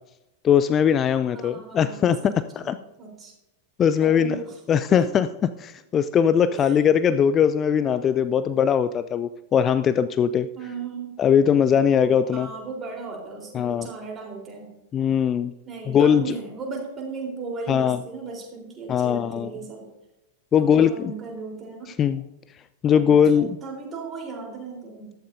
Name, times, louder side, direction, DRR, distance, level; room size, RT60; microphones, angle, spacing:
voice 1, 0.4-2.8 3.8-4.4 4.7-5.3 5.6-10.5 11.2-12.5 13.5-13.9 14.9-15.5 15.9-16.3 17.7-18.0 18.9-19.5 20.5-21.1 22.0-22.2 22.8-23.6, left 8 dB, 25° left, 12 dB, 0.4 m, -20 dB
voice 2, 1.3-3.3 4.0-4.6 4.9-5.0 6.5-6.7 10.5-11.2 11.7-14.7 15.7-19.9 20.5-22.0 22.9-25.1, right 4 dB, 20° right, -1 dB, 3.9 m, -37 dB
14.0 x 13.0 x 2.7 m, 0.95 s
figure-of-eight pair, 90°, 0 cm